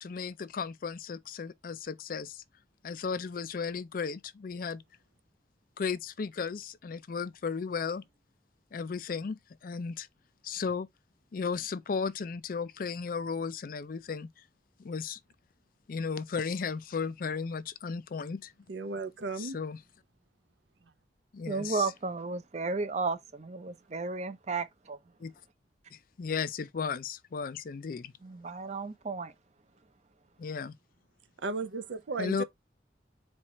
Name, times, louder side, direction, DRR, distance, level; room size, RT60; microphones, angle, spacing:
voice 1, 0.0-2.4 2.8-4.8 5.8-8.0 8.7-10.1 10.4-10.9 11.3-14.3 14.8-15.2 15.9-18.5 19.4-19.8 21.3-21.9 25.2-25.3 25.9-28.1 30.4-30.8 32.2-32.4, left 5 dB, 50° left, 0.4 m, -35 dB
voice 2, 18.7-19.6 31.4-32.4, right 3 dB, 85° right, 0.6 m, -35 dB
voice 3, 21.5-25.0 28.2-29.3, right 4 dB, 40° right, 0.6 m, -33 dB
4.4 x 2.5 x 4.2 m
head